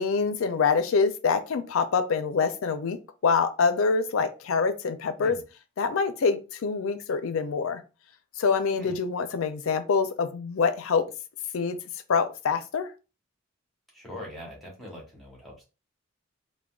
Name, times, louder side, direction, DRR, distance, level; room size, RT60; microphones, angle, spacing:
voice 1, 0.0-5.4 5.8-7.8 8.4-11.1 11.5-11.8 12.1-12.9, left 5 dB, 70° left, 10 dB, 0.4 m, -25 dB
voice 2, 13.9-15.6, left 1 dB, ahead, -2 dB, 0.9 m, -42 dB
3.5 x 2.1 x 2.3 m, 0.31 s
head